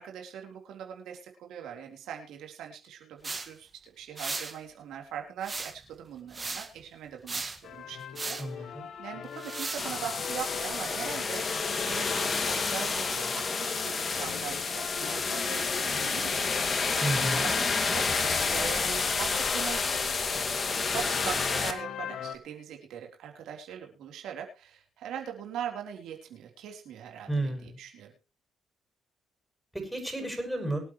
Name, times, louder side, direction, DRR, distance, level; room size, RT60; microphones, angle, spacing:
voice 1, 0.0-3.7 4.0-8.7 9.0-16.5 16.8-19.8 20.8-28.1, right 8 dB, 80° right, 2 dB, 3.7 m, -41 dB
sound 1, 3.2-3.5 4.2-4.6 5.4-5.9 6.3-6.7 7.3-7.6 8.1-8.5 9.4-9.9, right 3 dB, 25° right, 1.9 m, -36 dB
sound 2, 7.6-22.4, left 8 dB, 65° left, 1.7 m, -42 dB
voice 2, 8.4-8.9 17.0-17.4 27.3-27.7 29.7-30.8, right 1 dB, 5° right, 5 dB, 6.4 m, -32 dB
sound 3, 9.8-21.7, left 4 dB, 35° left, 2.3 m, -29 dB
24.5 x 8.6 x 3.1 m, 0.31 s
cardioid pair, 90°, 0 cm